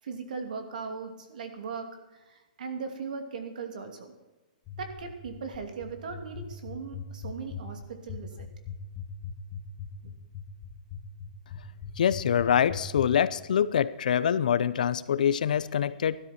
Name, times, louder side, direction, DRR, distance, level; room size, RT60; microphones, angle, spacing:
voice 1, 0.0-4.1 4.8-8.5 10.0-10.1, right 5 dB, 65° right, 6 dB, 2.7 m, -38 dB
sound 1, 4.7-13.1, left 9 dB, 20° left, 1.6 m, -39 dB
voice 2, 12.0-16.2, left 8 dB, 65° left, 16 dB, 0.7 m, -25 dB
15.5 x 12.5 x 4.4 m, 1.1 s
hypercardioid pair, 165°, 5 cm